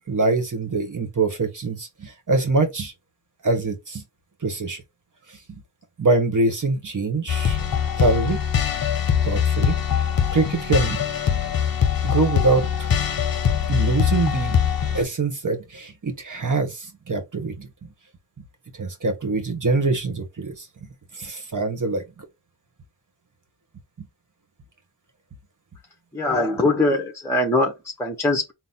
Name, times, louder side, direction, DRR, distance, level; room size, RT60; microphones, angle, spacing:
voice 1, 0.1-2.9 3.4-4.0 4.4-4.8 6.0-7.6 8.0-8.4 9.2-10.0 10.3-11.0 12.0-12.9 13.7-14.6 14.9-17.7 18.8-20.7 21.2-22.0, right 3 dB, 45° right, 1.4 m, -24 dB
sound 1, 7.3-15.0, left 8 dB, 50° left, 0.8 m, -22 dB
voice 2, 26.1-28.5, left 2 dB, 5° left, 1.0 m, -22 dB
4.0 x 2.2 x 4.0 m
cardioid pair, 45°, 45 cm